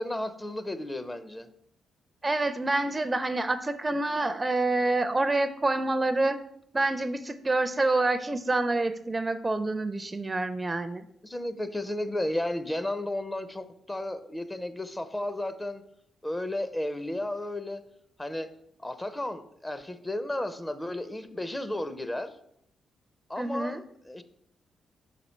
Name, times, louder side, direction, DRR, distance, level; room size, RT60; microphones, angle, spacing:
voice 1, 0.0-1.5 11.2-15.8 16.2-17.8 18.2-18.5 18.8-22.4 23.3-24.2, left 1 dB, 20° left, 11 dB, 0.6 m, -33 dB
voice 2, 2.2-6.4 6.7-11.0 23.4-23.8, right 2 dB, 25° right, 12 dB, 0.4 m, -27 dB
5.5 x 4.2 x 4.4 m, 0.73 s
supercardioid pair, 55°, 0 cm